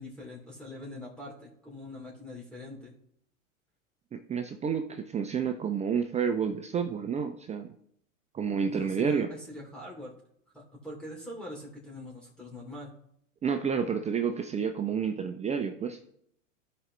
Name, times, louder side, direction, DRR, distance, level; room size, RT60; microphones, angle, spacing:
voice 1, 0.0-2.9 8.7-10.1 10.5-12.9, left 1 dB, ahead, -4 dB, 3.0 m, -43 dB
voice 2, 4.1-7.7 8.3-9.3 13.4-16.0, right 6 dB, 15° right, 7 dB, 0.6 m, -30 dB
14.5 x 5.0 x 3.2 m, 0.70 s
hypercardioid pair, 105°, 39 cm